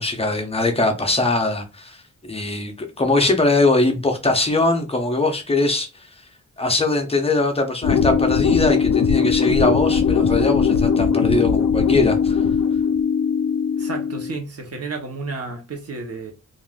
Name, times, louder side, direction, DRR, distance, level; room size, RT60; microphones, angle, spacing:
voice 1, 0.0-2.0 2.2-5.9 6.6-12.4, left 2 dB, 20° left, 0.5 m, -21 dB
sound 1, 7.8-14.4, left 6 dB, 65° left, 0.5 m, -19 dB
voice 2, 13.8-16.3, right 3 dB, 55° right, 0.8 m, -32 dB
3.4 x 2.4 x 2.3 m
wide cardioid pair, 160°, 30 cm